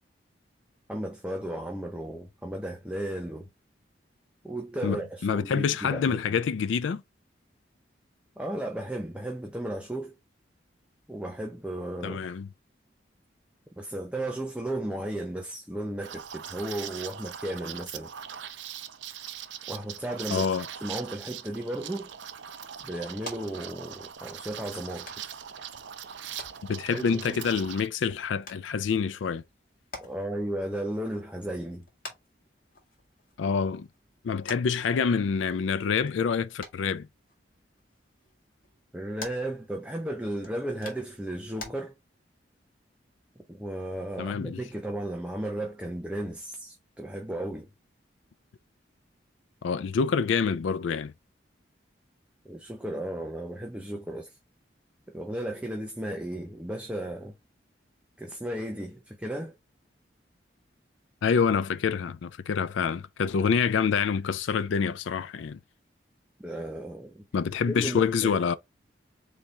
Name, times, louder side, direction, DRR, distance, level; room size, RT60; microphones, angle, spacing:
voice 1, 0.9-3.5 4.4-6.4 8.4-10.2 11.1-12.3 13.8-18.1 19.7-20.4 20.8-22.1 22.8-25.1 26.9-27.5 30.0-31.9 38.9-41.9 43.5-47.7 52.4-54.4 55.1-57.4 58.2-59.5 66.4-67.2 67.7-68.4, right 1 dB, 5° right, 0.6 m, -35 dB
voice 2, 4.8-7.0 12.0-12.5 20.3-20.7 26.7-29.4 33.4-33.9 34.2-37.1 44.2-44.6 49.6-51.1 61.2-65.6 67.3-68.5, left 6 dB, 90° left, 0.4 m, -27 dB
Liquid, 16.0-27.9, right 9 dB, 80° right, 0.6 m, -41 dB
sound 1, 21.9-41.7, left 3 dB, 50° left, 1.9 m, -50 dB
4.2 x 3.4 x 3.6 m
head